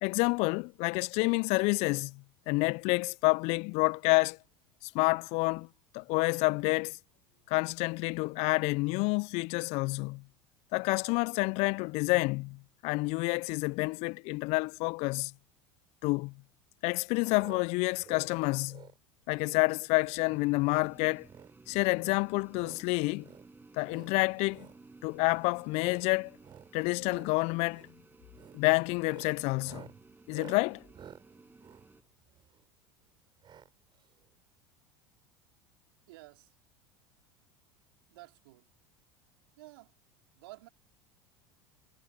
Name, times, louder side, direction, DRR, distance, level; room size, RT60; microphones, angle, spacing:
voice 1, 0.0-4.4 4.8-5.7 5.9-7.0 7.5-10.2 10.7-15.3 16.0-16.3 16.8-18.8 19.3-21.3 21.7-23.3 23.7-24.7 25.0-26.3 26.7-27.9 28.5-29.9 30.3-30.8, left 27 dB, 55° left, 0.8 m, -29 dB
sound 1, 17.4-17.7 17.9-18.3 18.7-19.0 19.3-19.6 20.0-20.2 20.6-20.9 21.2-21.5 21.9-22.8 23.2-23.5 23.8-24.1 24.5-24.8 25.2-25.5 25.8-26.1 26.4-26.7 27.0-27.3 27.7-27.9 28.3-28.6 29.0-32.6 33.4-33.7 34.0-34.1 34.2-34.3, right 9 dB, 35° right, 6.3 m, -52 dB
sound 2, 20.2-32.0, right 3 dB, 15° right, 7.2 m, -57 dB
voice 2, 36.1-36.5 38.1-38.6 39.6-39.9 40.3-40.7, right 20 dB, 70° right, 3.8 m, -51 dB
hypercardioid pair, 75°, 13 cm